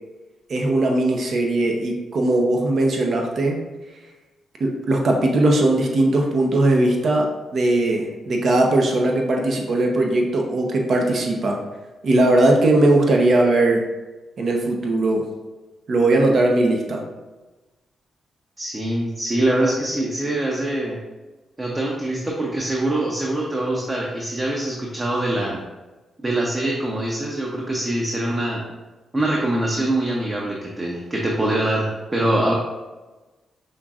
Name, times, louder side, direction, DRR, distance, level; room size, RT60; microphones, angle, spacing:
voice 1, 0.5-3.6 4.6-7.3 7.5-11.6 12.0-13.8 14.4-15.3 15.9-17.0, right 2 dB, 60° right, 1 dB, 0.8 m, -19 dB
voice 2, 18.6-21.0 21.6-25.6 26.2-28.7 29.1-32.5, right 1 dB, 30° right, -2 dB, 0.8 m, -23 dB
5.5 x 3.7 x 2.4 m, 1.2 s
cardioid pair, 70°, 0 cm